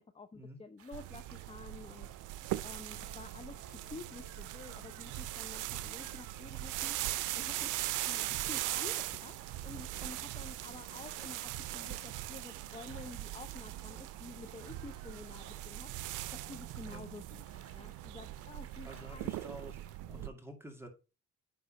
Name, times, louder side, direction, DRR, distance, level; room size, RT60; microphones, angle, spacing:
voice 1, 0.0-2.1 2.6-7.0 7.3-9.3 9.6-15.9 16.3-17.4 17.7-19.3 20.1-20.3, left 3 dB, 20° left, 7 dB, 0.7 m, -50 dB
sound 1, 0.8-20.0, right 7 dB, 50° right, 1.3 m, -58 dB
sound 2, 0.9-20.3, right 16 dB, 90° right, 0.5 m, -40 dB
sound 3, 2.7-16.0, left 5 dB, 55° left, 1.9 m, -66 dB
voice 2, 18.8-19.8 20.1-20.9, equal, 10° right, 3 dB, 2.1 m, -49 dB
9.6 x 3.4 x 5.2 m, 0.32 s
cardioid pair, 90°, 30 cm